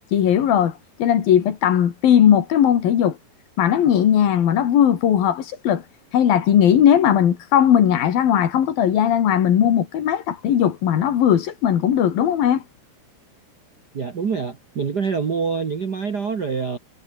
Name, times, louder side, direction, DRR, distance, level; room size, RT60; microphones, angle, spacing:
voice 1, 0.1-0.7 1.0-3.2 3.6-5.8 6.1-12.6, left 9 dB, 65° left, 3.9 m, -18 dB
voice 2, 13.9-16.8, right 5 dB, 50° right, 1.2 m, -25 dB
omnidirectional pair, 4.6 m